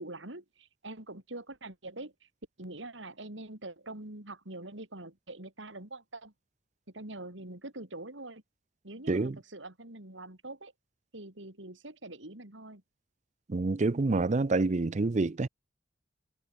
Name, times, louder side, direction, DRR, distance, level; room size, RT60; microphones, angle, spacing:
voice 1, 0.0-2.1 2.6-6.3 6.9-8.4 8.8-10.7 11.1-12.8, right 2 dB, 75° right, 4.2 m, -44 dB
voice 2, 9.1-9.4 13.5-15.5, right 3 dB, 40° right, 0.5 m, -27 dB
head